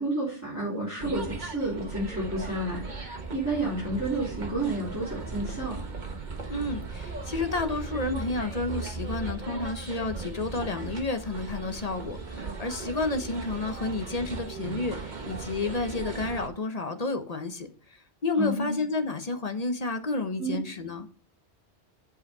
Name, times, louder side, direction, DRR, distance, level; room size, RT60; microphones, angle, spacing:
voice 1, 0.0-5.8 18.4-18.8 20.4-20.6, right 2 dB, 15° right, -9 dB, 4.1 m, -30 dB
sound 1, 1.0-16.5, right 3 dB, 45° right, 1.3 m, -37 dB
voice 2, 6.5-21.1, left 3 dB, 40° left, 7 dB, 0.9 m, -31 dB
7.9 x 5.3 x 5.3 m, 0.39 s
omnidirectional pair, 1.1 m